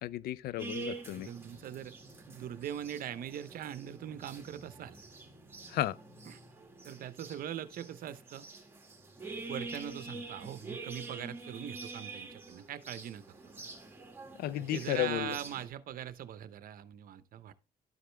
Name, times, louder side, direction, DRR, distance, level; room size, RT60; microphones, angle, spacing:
voice 1, 0.0-1.3 5.7-6.0 14.4-15.4, left 14 dB, 65° left, 0.4 m, -33 dB
sound 1, 0.6-15.7, right 3 dB, 15° right, 2.0 m, -46 dB
voice 2, 1.1-1.9 2.3-5.0 6.3-6.4 6.8-8.5 9.5-13.5 14.6-17.5, right 10 dB, 55° right, 0.7 m, -41 dB
12.0 x 5.0 x 3.3 m
cardioid pair, 110°, 17 cm